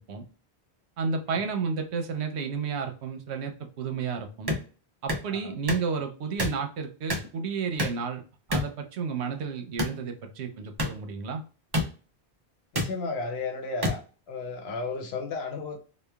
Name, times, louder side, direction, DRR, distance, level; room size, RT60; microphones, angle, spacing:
voice 1, 1.0-4.5 5.0-8.2 8.5-11.4, right 5 dB, 85° right, 0.9 m, -32 dB
sound 1, 4.5-4.6 5.1-5.2 5.7-5.9 6.4-6.6 7.1-7.3 7.8-8.0 8.5-8.7 9.8-10.0 10.8-10.9 11.7-11.9 12.7-12.9 13.8-14.0, left 1 dB, 30° right, 0.5 m, -27 dB
voice 2, 12.7-14.0 14.3-15.8, left 4 dB, 75° left, 0.9 m, -33 dB
3.0 x 2.2 x 2.2 m
omnidirectional pair, 1.1 m